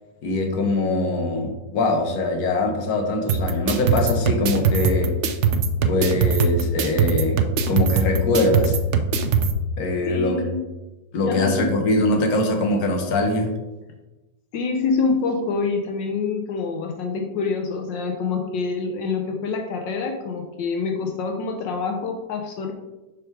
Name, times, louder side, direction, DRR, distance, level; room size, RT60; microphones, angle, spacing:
voice 1, 0.2-5.1 5.9-7.4 7.7-8.8 9.8-10.4 11.1-13.5, left 2 dB, 60° left, 3 dB, 1.5 m, -22 dB
sound 1, 3.3-9.5, right 4 dB, 85° right, 0.6 m, -21 dB
voice 2, 10.0-10.7 11.2-11.7 14.5-22.7, left 4 dB, 80° left, 4 dB, 1.5 m, -26 dB
6.8 x 5.0 x 4.6 m, 1.1 s
omnidirectional pair, 2.0 m